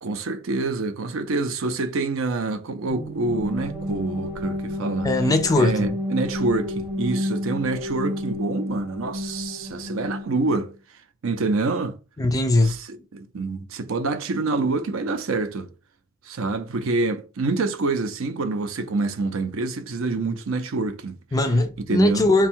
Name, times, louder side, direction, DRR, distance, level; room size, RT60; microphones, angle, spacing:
voice 1, 0.0-5.1 5.6-10.7 11.2-12.0 12.6-15.7 16.3-21.2 21.9-22.2, right 3 dB, 65° right, 0.5 m, -26 dB
sound 1, 2.9-10.7, left 1 dB, 10° right, 0.7 m, -30 dB
voice 2, 5.0-5.9 12.2-12.8 21.3-22.5, left 2 dB, 15° left, 0.4 m, -20 dB
3.5 x 2.3 x 4.3 m
head